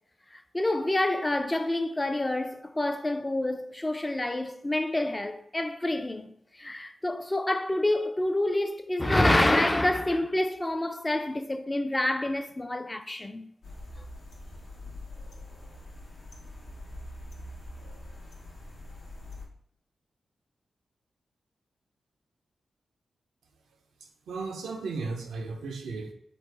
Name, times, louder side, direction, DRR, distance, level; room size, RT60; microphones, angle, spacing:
voice 1, 0.3-13.5, left 1 dB, 25° left, 0.3 m, -27 dB
sound 1, 13.6-19.5, left 1 dB, 75° left, 0.7 m, -44 dB
voice 2, 24.3-26.1, right 4 dB, 90° right, 0.4 m, -35 dB
3.3 x 2.1 x 3.2 m
supercardioid pair, 45°, 0 cm